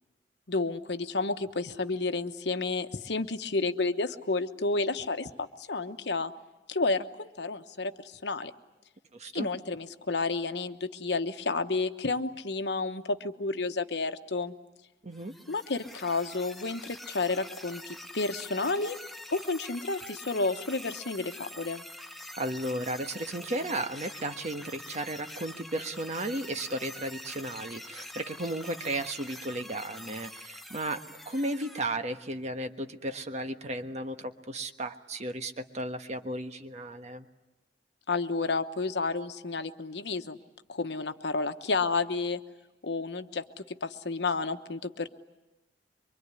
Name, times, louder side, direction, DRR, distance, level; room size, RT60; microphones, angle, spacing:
voice 1, 0.5-6.3 6.7-8.5 9.3-14.5 15.5-19.0 19.3-21.8 38.1-40.4 40.7-42.4 42.8-45.1, left 3 dB, 75° left, 9 dB, 1.1 m, -31 dB
voice 2, 9.1-9.5 15.0-15.3 22.3-37.3, right 1 dB, 40° right, 7 dB, 1.4 m, -34 dB
sound 1, 15.1-31.8, left 1 dB, ahead, 1.1 m, -45 dB
24.5 x 24.0 x 9.8 m, 1.0 s
head